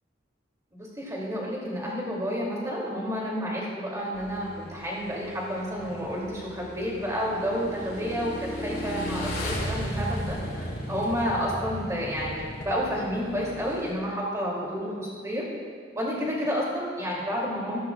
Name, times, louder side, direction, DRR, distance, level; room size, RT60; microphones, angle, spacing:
voice 1, 0.7-15.4 15.9-17.9, equal, 15° right, -4 dB, 2.7 m, -30 dB
Motorcycle / Engine, 4.1-13.9, equal, 50° left, 3.0 m, -36 dB
15.5 x 13.5 x 2.4 m, 2.3 s
head